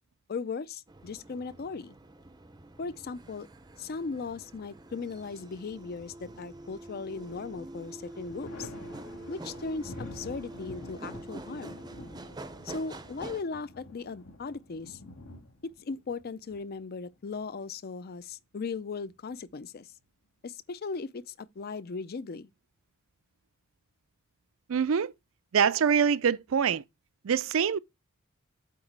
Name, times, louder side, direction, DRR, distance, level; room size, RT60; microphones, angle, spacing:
voice 1, 0.3-1.9 2.8-3.5 3.8-8.7 9.3-11.8 12.6-15.0 15.6-19.9 20.4-22.5, left 4 dB, 50° left, 0.5 m, -38 dB
sound 1, 0.9-13.4, right 2 dB, 20° right, 0.5 m, -46 dB
Thunder, 6.6-7.4 7.8-17.3 18.8-19.7, left 2 dB, 80° left, 2.2 m, -48 dB
voice 2, 24.7-25.1 25.5-26.8 27.2-27.8, right 7 dB, 75° right, 0.4 m, -24 dB
8.3 x 2.9 x 5.9 m
head